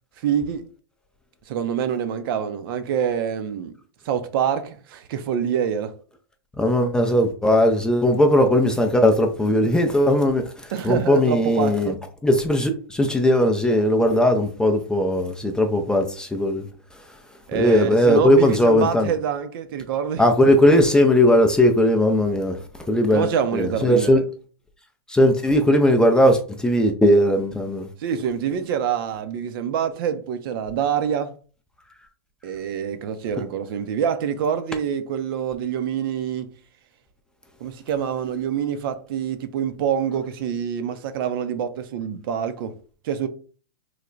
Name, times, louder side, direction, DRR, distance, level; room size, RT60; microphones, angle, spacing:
voice 1, 0.2-0.6 1.5-3.7 4.0-5.9 10.7-12.0 17.5-20.2 23.1-24.2 28.0-31.3 32.4-36.5 37.6-42.8 43.0-43.3, right 8 dB, 55° right, 0.6 m, -26 dB
voice 2, 6.6-10.5 10.8-11.9 12.2-16.7 17.5-19.1 20.2-22.6 22.9-24.2 25.1-27.9, left 1 dB, 5° left, 0.4 m, -18 dB
3.2 x 2.1 x 3.8 m
hypercardioid pair, 125°, 14 cm